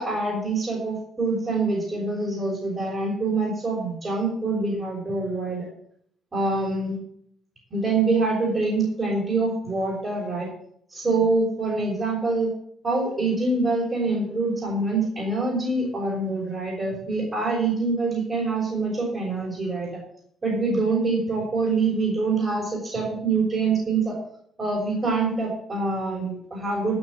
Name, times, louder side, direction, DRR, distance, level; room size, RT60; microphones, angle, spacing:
voice 1, 0.0-5.7 6.3-7.0 7.7-10.5 10.9-12.5 12.8-20.0 20.4-24.2 24.6-27.0, right 3 dB, 35° right, -4 dB, 5.8 m, -25 dB
14.0 x 6.4 x 7.9 m, 0.66 s
cardioid pair, 90°, 0 cm